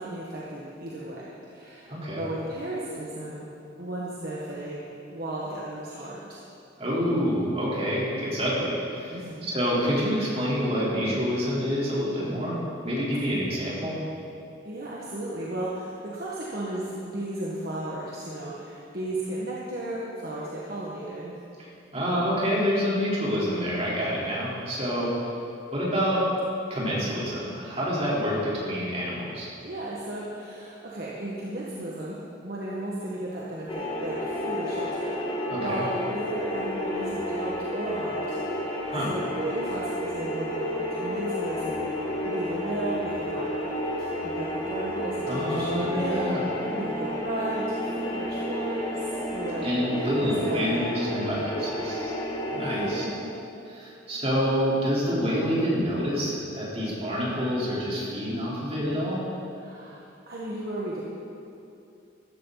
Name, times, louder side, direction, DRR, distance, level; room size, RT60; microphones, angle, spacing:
voice 1, 0.0-3.5 3.8-6.4 9.1-9.5 14.6-21.3 29.6-35.2 35.6-38.4 39.0-41.9 42.2-43.7 44.0-46.4 46.7-51.2 52.6-53.3 53.6-53.7 59.5-60.0 60.3-61.0, right 1 dB, 50° right, -6 dB, 1.5 m, -35 dB
voice 2, 1.8-2.2 6.8-9.2 9.4-12.6 12.8-14.0 21.9-25.1 25.7-26.2 26.7-29.5 35.5-35.8 38.8-39.1 45.3-46.4 49.6-52.1 52.5-53.0 53.8-59.2, equal, 30° right, -7 dB, 3.7 m, -27 dB
sound 1, 33.7-53.1, left 1 dB, 25° left, 1.5 m, -31 dB
14.5 x 13.5 x 4.0 m, 2.7 s
head